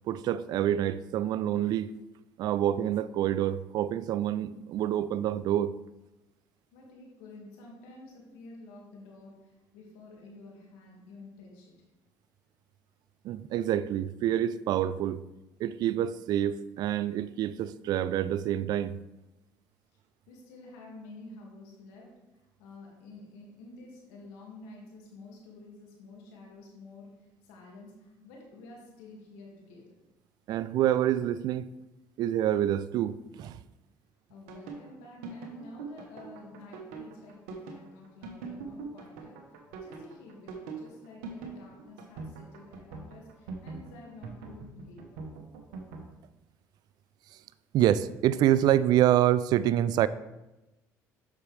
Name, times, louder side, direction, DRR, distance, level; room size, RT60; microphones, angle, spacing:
voice 1, 0.1-1.9 2.4-5.8 13.2-15.2 15.6-19.0 30.5-31.7 32.2-33.6 47.7-50.1, right 11 dB, 65° right, 16 dB, 0.4 m, -27 dB
voice 2, 6.7-11.8 20.3-22.1 22.6-27.1 27.4-30.0 34.3-39.4 39.8-45.1, left 2 dB, 90° left, -1 dB, 2.1 m, -50 dB
sound 1, 34.5-46.0, right 4 dB, 85° right, 1.1 m, -42 dB
8.3 x 6.3 x 3.3 m, 0.99 s
supercardioid pair, 80°, 8 cm